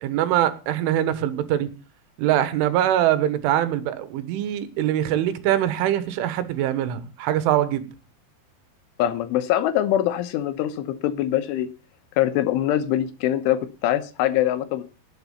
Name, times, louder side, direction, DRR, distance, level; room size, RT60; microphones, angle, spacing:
voice 1, 0.0-1.7 2.2-7.9, right 12 dB, 75° right, 13 dB, 3.6 m, -23 dB
voice 2, 9.0-11.7 12.2-14.8, left 12 dB, 80° left, 12 dB, 3.4 m, -23 dB
18.0 x 8.1 x 5.5 m, 0.33 s
omnidirectional pair, 5.7 m